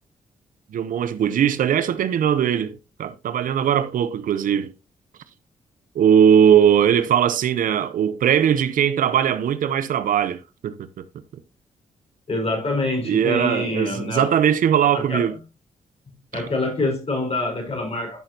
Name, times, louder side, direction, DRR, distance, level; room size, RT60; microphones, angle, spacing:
voice 1, 0.7-4.7 5.9-11.0 13.0-15.3 16.3-16.5, right 9 dB, 75° right, 0.8 m, -20 dB
voice 2, 12.3-14.4 14.9-15.3 16.3-18.2, left 2 dB, 45° left, 5.2 m, -26 dB
12.0 x 6.5 x 2.9 m
cardioid pair, 60°, 14 cm